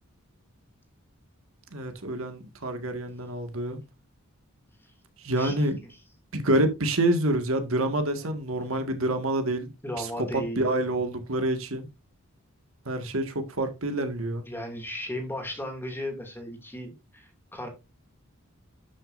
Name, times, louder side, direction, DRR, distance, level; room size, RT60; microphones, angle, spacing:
voice 1, 1.7-3.8 5.2-5.8 6.3-9.7 10.0-11.9 12.9-14.4, right 1 dB, 70° right, 1.9 m, -27 dB
voice 2, 5.4-6.0 8.2-8.3 9.8-10.7 14.5-17.7, left 1 dB, 10° left, 2.6 m, -36 dB
12.0 x 6.5 x 2.6 m
head